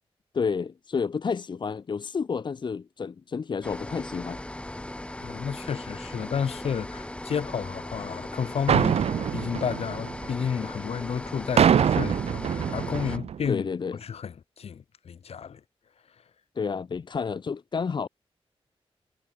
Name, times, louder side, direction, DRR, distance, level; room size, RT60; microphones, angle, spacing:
voice 1, 0.3-4.4 13.5-14.0 16.5-18.1, left 5 dB, 45° left, 1.3 m, -30 dB
sound 1, 3.6-13.2, left 1 dB, 10° left, 7.9 m, -38 dB
voice 2, 5.2-13.7 14.0-15.6, left 7 dB, 75° left, 4.0 m, -32 dB
sound 2, 8.7-10.6 11.6-13.5, right 8 dB, 80° right, 0.8 m, -24 dB
wide cardioid pair, 145°, 10 cm